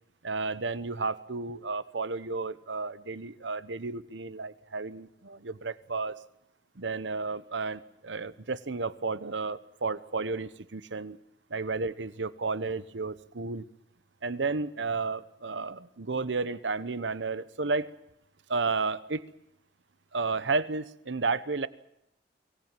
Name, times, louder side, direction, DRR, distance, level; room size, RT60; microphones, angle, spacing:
voice 1, 0.2-6.1 6.8-11.2 11.5-13.6 14.2-17.9 18.5-19.2 20.1-21.7, right 4 dB, 80° right, 15 dB, 1.0 m, -32 dB
24.0 x 18.5 x 9.0 m, 0.80 s
head